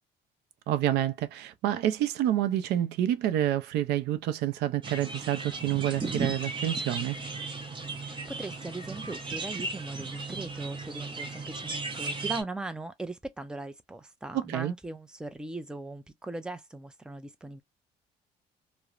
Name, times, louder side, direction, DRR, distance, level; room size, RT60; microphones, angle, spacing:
voice 1, 0.7-7.2 14.5-14.7, right 12 dB, 80° right, 0.5 m, -28 dB
sound 1, 4.8-12.4, right 3 dB, 30° right, 0.9 m, -35 dB
voice 2, 8.0-17.6, right 2 dB, 5° right, 0.5 m, -39 dB
2.9 x 2.1 x 2.4 m
cardioid pair, 110°, 17 cm